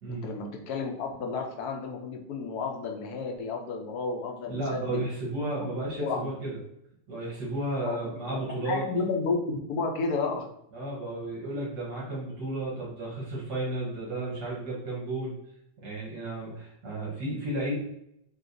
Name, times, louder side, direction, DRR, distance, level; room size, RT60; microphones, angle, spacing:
voice 1, 0.1-5.0 5.6-5.7 6.0-6.3 7.8-10.5, left 4 dB, 65° left, 2 dB, 1.1 m, -32 dB
voice 2, 4.5-6.6 7.1-8.8 10.7-15.3 15.8-17.8, right 1 dB, 70° right, -6 dB, 1.8 m, -33 dB
6.3 x 2.4 x 2.6 m, 0.78 s
omnidirectional pair, 1.9 m